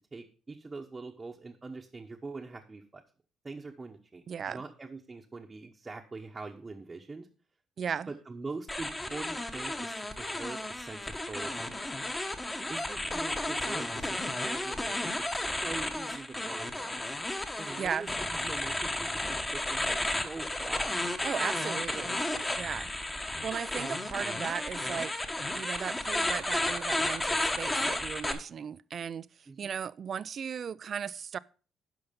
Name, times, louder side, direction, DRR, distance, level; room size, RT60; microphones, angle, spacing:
voice 1, 0.1-3.0 3.4-7.3 8.1-11.9 12.7-17.0 17.6-20.9 29.5-29.7, right 3 dB, 20° right, 1.0 m, -43 dB
voice 2, 4.3-4.6 7.8-8.1 17.8-18.1 21.2-22.2 22.6-22.9 23.4-25.1 25.5-29.3 29.6-31.4, right 7 dB, 45° right, 0.4 m, -36 dB
sound 1, 8.7-28.3, left 1 dB, 15° left, 1.1 m, -33 dB
11.0 x 5.7 x 5.2 m
cardioid pair, 130°, 0 cm